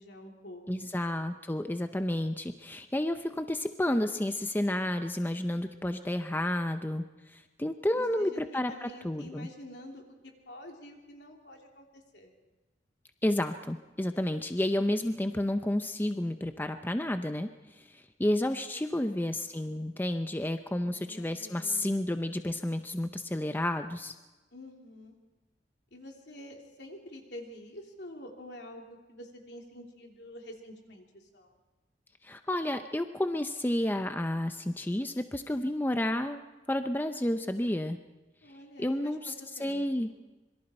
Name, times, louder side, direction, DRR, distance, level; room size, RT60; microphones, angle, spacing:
voice 1, 0.0-0.9 7.9-12.4 18.7-19.4 20.8-22.0 24.5-25.1 25.9-31.6 38.4-40.2, left 1 dB, 70° left, 1 dB, 3.2 m, -48 dB
voice 2, 0.7-9.5 13.2-17.5 17.8-24.1 32.2-36.4 36.7-38.0 38.8-39.3 39.6-40.1, left 1 dB, 10° left, 8 dB, 0.6 m, -31 dB
26.0 x 22.5 x 4.4 m, 1.1 s
head